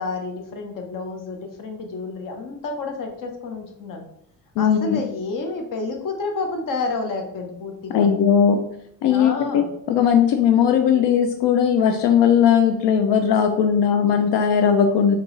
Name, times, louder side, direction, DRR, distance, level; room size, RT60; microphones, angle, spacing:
voice 1, 0.0-4.0 4.6-8.1 9.1-9.7, left 3 dB, 50° left, 3 dB, 0.9 m, -29 dB
voice 2, 4.6-5.0 7.9-8.6 9.0-15.2, left 8 dB, 80° left, 6 dB, 0.6 m, -18 dB
4.5 x 3.8 x 3.1 m, 0.76 s
cardioid pair, 170°, 41 cm